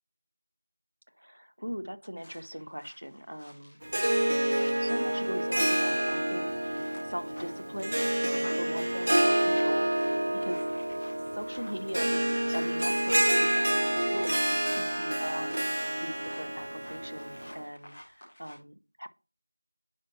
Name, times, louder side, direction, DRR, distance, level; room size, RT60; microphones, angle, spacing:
voice 1, 1.2-3.8 4.8-10.6 11.3-12.2 12.5-19.1, equal, 65° right, 12 dB, 0.8 m, -40 dB
sound 1, 2.2-18.6, equal, 10° left, 1.5 m, -52 dB
Harp, 3.8-17.6, right 1 dB, 30° right, 0.4 m, -28 dB
9.6 x 5.7 x 2.8 m, 0.33 s
figure-of-eight pair, 175°, 0 cm